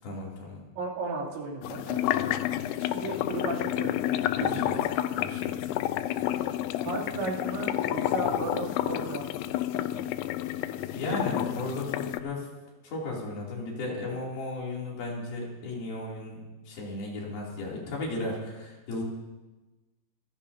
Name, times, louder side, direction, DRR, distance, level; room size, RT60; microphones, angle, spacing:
voice 1, 0.0-0.6 4.4-4.7 5.1-5.7 10.9-12.5 12.8-19.0, left 2 dB, 60° left, -3 dB, 4.5 m, -35 dB
voice 2, 0.8-2.4 2.8-4.0 4.4-4.9 6.8-9.5, right 3 dB, 75° right, -5 dB, 5.1 m, -35 dB
sound 1, 1.6-12.2, left 13 dB, 85° left, 2.4 m, -30 dB
26.5 x 15.5 x 2.7 m, 1.1 s
omnidirectional pair, 5.3 m